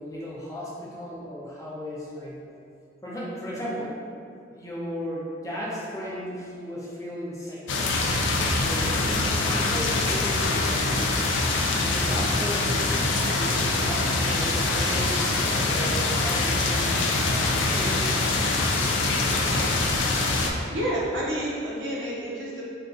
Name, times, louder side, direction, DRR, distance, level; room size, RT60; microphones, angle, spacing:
voice 1, 0.0-2.4 3.0-3.9 4.5-7.8 8.5-10.8 11.6-13.0 13.4-15.3 15.7-18.1, equal, 20° left, -6 dB, 0.6 m, -35 dB
sound 1, 7.7-20.5, left 2 dB, 80° left, 0.4 m, -24 dB
voice 2, 20.7-22.6, equal, 80° right, -6 dB, 0.7 m, -29 dB
2.5 x 2.4 x 3.7 m, 2.5 s
head